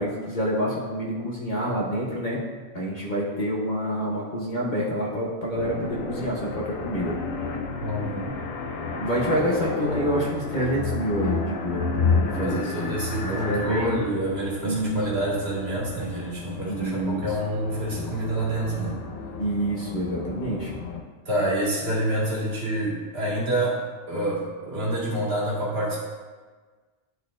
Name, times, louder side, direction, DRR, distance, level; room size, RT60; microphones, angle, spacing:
voice 1, 0.0-2.4 2.7-7.1 9.0-12.9 13.2-14.0 14.6-15.0 16.7-17.3 19.4-20.7, equal, 40° left, -4 dB, 0.9 m, -27 dB
sound 1, 5.5-21.0, left 4 dB, 90° left, 1.1 m, -31 dB
voice 2, 7.8-8.3 9.2-9.3 12.2-19.0 21.3-23.8 24.1-26.0, right 1 dB, 50° right, -6 dB, 2.0 m, -27 dB
10.5 x 4.1 x 2.5 m, 1.4 s
omnidirectional pair, 1.3 m